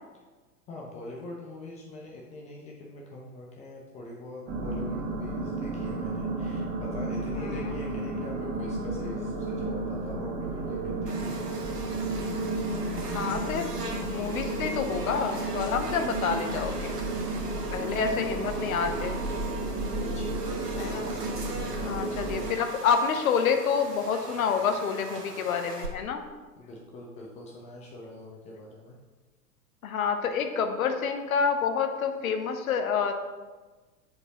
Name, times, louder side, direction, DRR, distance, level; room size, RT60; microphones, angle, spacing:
voice 1, 0.7-11.7 17.5-17.7 20.1-21.0 21.7-21.9 26.6-29.0, left 2 dB, 15° left, -2 dB, 0.5 m, -43 dB
sound 1, 4.5-22.5, right 2 dB, 20° right, 1.1 m, -32 dB
voice 2, 7.4-7.7 13.1-13.7 14.0-17.0 17.7-19.2 20.8-21.1 21.8-26.2 29.8-33.1, left 6 dB, 60° left, 6 dB, 0.8 m, -28 dB
Buzz, 11.1-25.9, right 3 dB, 80° right, 1.2 m, -42 dB
7.7 x 4.5 x 2.9 m, 1.3 s
figure-of-eight pair, 100°, 47 cm